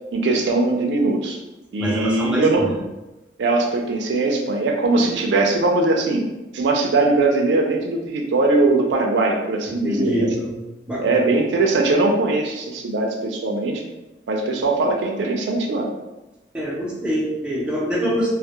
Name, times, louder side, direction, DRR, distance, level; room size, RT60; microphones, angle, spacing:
voice 1, 0.1-1.4 1.7-2.7 3.4-6.3 6.5-10.3 11.0-13.8 14.3-15.9, right 3 dB, 80° right, 1 dB, 0.4 m, -20 dB
voice 2, 1.8-2.7 4.9-5.1 9.7-10.6 10.9-11.3 16.5-18.3, equal, 5° right, -7 dB, 0.5 m, -25 dB
2.2 x 2.0 x 2.8 m, 1.0 s
head